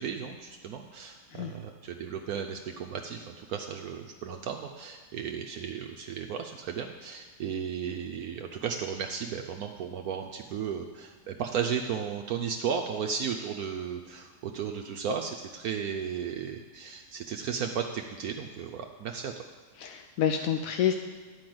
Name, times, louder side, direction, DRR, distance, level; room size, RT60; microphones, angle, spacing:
voice 1, 0.0-19.3, right 7 dB, 70° right, 3 dB, 1.0 m, -34 dB
voice 2, 19.8-20.9, left 9 dB, 70° left, 6 dB, 0.8 m, -28 dB
10.5 x 5.3 x 7.7 m, 1.5 s
omnidirectional pair, 1.8 m